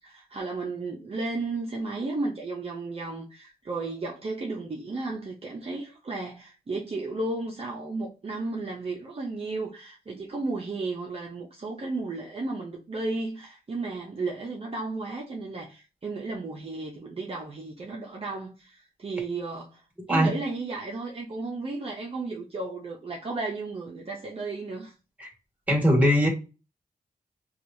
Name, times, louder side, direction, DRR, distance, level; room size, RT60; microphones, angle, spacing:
voice 1, 0.0-19.8 20.1-24.9, right 3 dB, 40° right, 0.6 m, -34 dB
voice 2, 25.7-26.3, equal, 10° right, 1.5 m, -20 dB
2.9 x 2.3 x 2.6 m
cardioid pair, 65°, 16 cm